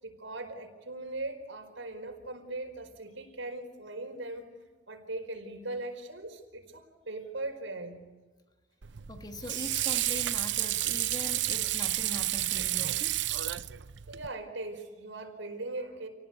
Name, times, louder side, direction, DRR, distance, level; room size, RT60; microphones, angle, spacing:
voice 1, 0.0-4.5 4.9-8.0 14.1-16.1, right 2 dB, 90° right, 4.9 m, -39 dB
Water / Sink (filling or washing), 8.8-14.3, right 14 dB, 65° right, 0.7 m, -31 dB
voice 2, 9.1-13.2, left 1 dB, 20° left, 1.7 m, -42 dB
29.0 x 19.0 x 8.3 m
head